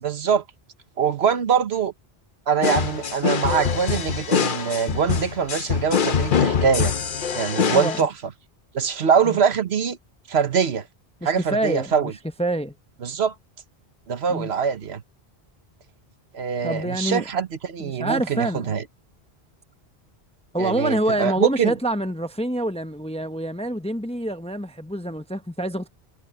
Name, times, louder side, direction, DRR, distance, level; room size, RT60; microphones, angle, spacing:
voice 1, 0.0-0.4 1.0-1.9 2.5-6.9 7.3-8.1 8.7-10.0 10.3-10.9 11.2-12.1 13.0-13.3 14.1-15.0 16.3-18.8 20.6-21.7, right 7 dB, 75° right, 1.3 m, -23 dB
sound 1, 2.6-8.0, left 6 dB, 55° left, 1.0 m, -24 dB
voice 2, 7.7-8.1 9.2-9.4 11.2-12.1 12.4-12.7 14.3-14.5 16.6-17.3 17.8-18.8 20.5-25.9, right 1 dB, 5° left, 0.6 m, -26 dB
omnidirectional pair, 1.1 m